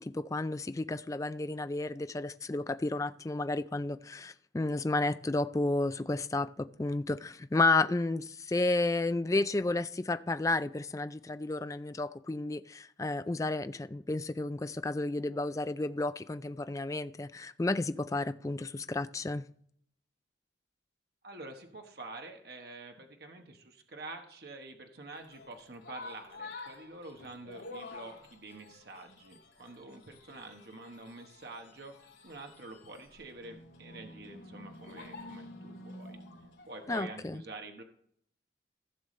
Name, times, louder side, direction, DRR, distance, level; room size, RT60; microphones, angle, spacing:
voice 1, 0.0-19.5 36.9-37.4, left 2 dB, 15° left, 0.3 m, -32 dB
voice 2, 21.2-36.2 36.7-37.8, right 2 dB, 55° right, 1.1 m, -47 dB
sound 1, 25.1-37.2, left 2 dB, 85° left, 2.7 m, -49 dB
15.5 x 6.8 x 3.2 m
head